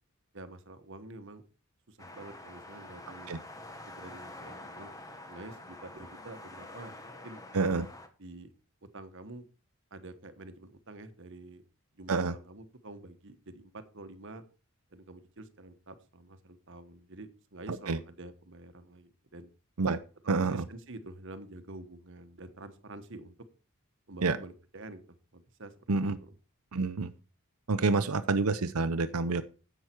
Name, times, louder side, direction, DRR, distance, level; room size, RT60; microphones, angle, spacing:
voice 1, 0.3-1.4 1.9-3.3 4.0-4.9 5.3-7.0 7.2-7.4 8.2-8.5 8.9-9.5 9.9-11.6 11.9-14.4 14.9-19.5 20.4-23.3 24.1-25.0 25.3-25.7 26.2-26.4, right 2 dB, 55° right, 9 dB, 1.2 m, -47 dB
sound 1, 2.0-8.1, left 2 dB, 15° left, 1.2 m, -47 dB
voice 2, 7.5-7.9 12.1-12.3 17.9-18.0 19.8-20.0 20.3-20.6 24.2-24.4 25.9-26.2 26.7-27.1 27.7-29.4, right 3 dB, 80° right, 11 dB, 0.7 m, -28 dB
10.5 x 8.0 x 4.6 m, 0.35 s
head